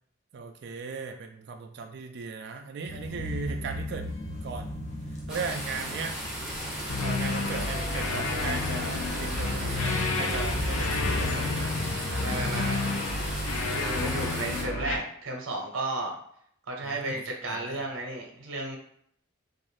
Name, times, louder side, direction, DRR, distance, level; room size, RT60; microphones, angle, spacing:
voice 1, 0.3-4.1 4.4-4.9 5.3-6.1 6.9-11.7 12.1-12.2 16.8-17.8, right 5 dB, 55° right, 4 dB, 0.3 m, -37 dB
sound 1, 2.9-12.7, left 1 dB, 35° left, 0.6 m, -37 dB
sound 2, 5.3-14.6, equal, 5° right, 0.8 m, -37 dB
sound 3, 6.9-15.0, left 3 dB, 85° left, 0.5 m, -30 dB
voice 2, 12.2-12.8 13.6-16.2 16.7-18.8, right 2 dB, 85° right, 0 dB, 0.7 m, -33 dB
2.6 x 2.5 x 3.2 m, 0.65 s
head